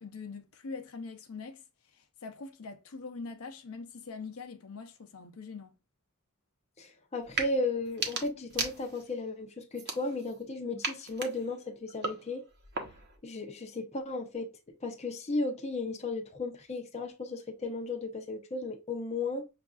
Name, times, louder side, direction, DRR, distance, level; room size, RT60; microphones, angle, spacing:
voice 1, 0.0-5.8, left 4 dB, 70° left, 0.7 m, -43 dB
voice 2, 6.8-12.4 13.2-14.5 14.8-19.5, left 2 dB, 30° left, 0.7 m, -35 dB
sound 1, 7.2-7.5 7.9-9.2 9.7-10.4 10.8-13.2, right 4 dB, 50° right, 0.9 m, -37 dB
6.4 x 2.5 x 2.4 m
head